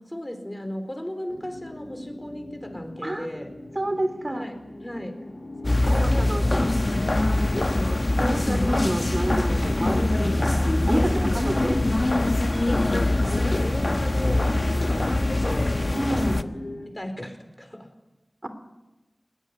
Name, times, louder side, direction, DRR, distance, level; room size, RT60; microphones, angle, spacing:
voice 1, 0.0-3.5 4.2-5.3 5.6-6.4 7.5-7.7 11.1-11.8 12.5-15.9 16.9-17.9, equal, 15° left, 7 dB, 4.4 m, -36 dB
sound 1, 1.3-16.9, left 1 dB, 80° left, 3.4 m, -39 dB
voice 2, 3.7-4.4 5.8-6.7 8.2-10.5 10.8-11.8 15.9-16.4 18.4-18.5, right 1 dB, 45° right, 9 dB, 3.2 m, -29 dB
sound 2, 5.6-16.4, left 2 dB, 55° left, 1.1 m, -23 dB
21.5 x 18.5 x 9.7 m, 1.1 s
wide cardioid pair, 40°, 0 cm